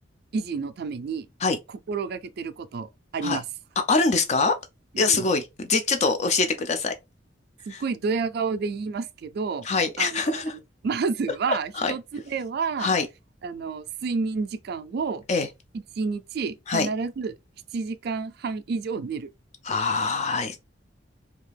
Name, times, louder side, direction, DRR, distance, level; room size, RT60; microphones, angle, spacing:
voice 1, 0.3-1.3 1.9-3.4 4.9-5.3 7.7-9.7 10.0-10.4 10.8-12.9 13.4-15.2 16.0-17.4 17.7-19.3, right 4 dB, 60° right, 0.4 m, -29 dB
voice 2, 3.9-4.6 5.0-6.9 7.7-7.8 9.6-10.5 11.5-11.9 12.8-13.1 15.3-15.5 16.7-16.9 19.6-20.6, left 4 dB, 40° left, 0.4 m, -24 dB
2.7 x 2.3 x 3.2 m
head